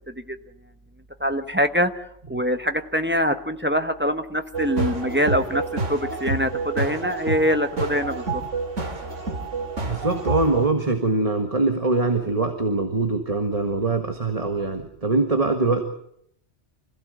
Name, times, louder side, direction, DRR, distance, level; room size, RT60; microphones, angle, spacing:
voice 1, 1.2-2.0 2.3-5.6 5.9-8.4, equal, 10° right, 7 dB, 1.1 m, -24 dB
sound 1, 4.5-10.7, right 3 dB, 85° right, 3.1 m, -28 dB
voice 2, 9.9-15.9, right 3 dB, 30° right, 5 dB, 1.8 m, -23 dB
26.0 x 16.5 x 8.0 m, 0.71 s
omnidirectional pair, 1.2 m